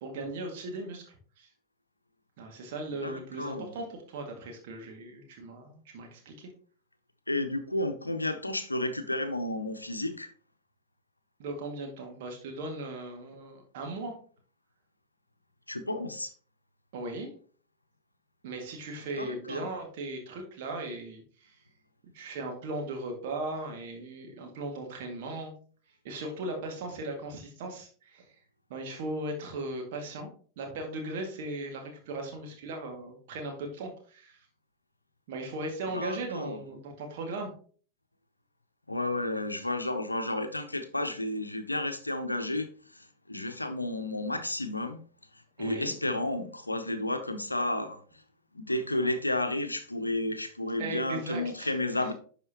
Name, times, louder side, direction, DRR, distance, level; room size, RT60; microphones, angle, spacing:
voice 1, 0.0-1.5 2.4-6.5 11.4-14.1 16.9-17.3 18.4-21.5 22.1-25.5 26.0-28.2 28.7-30.3 30.6-34.4 35.3-37.5 45.6-45.9 50.8-51.7 52.0-52.1, right 2 dB, 50° right, 2.0 m, -38 dB
voice 2, 3.0-3.7 7.3-10.3 15.7-16.3 19.2-19.7 35.8-36.6 38.9-45.0 45.3-48.2 48.5-52.1, left 1 dB, 85° left, 0.7 m, -32 dB
11.0 x 4.2 x 2.9 m
figure-of-eight pair, 90°, 0 cm